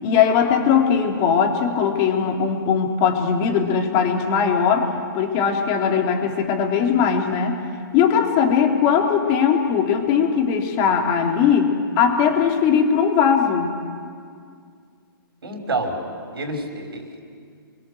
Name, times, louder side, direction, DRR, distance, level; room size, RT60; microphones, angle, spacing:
voice 1, 0.0-7.6 7.9-13.7, left 7 dB, 30° left, 2 dB, 3.3 m, -19 dB
voice 2, 15.4-16.0 16.3-17.2, right 2 dB, 85° right, 4 dB, 5.7 m, -28 dB
29.0 x 22.5 x 7.9 m, 2.2 s
hypercardioid pair, 140°, 12 cm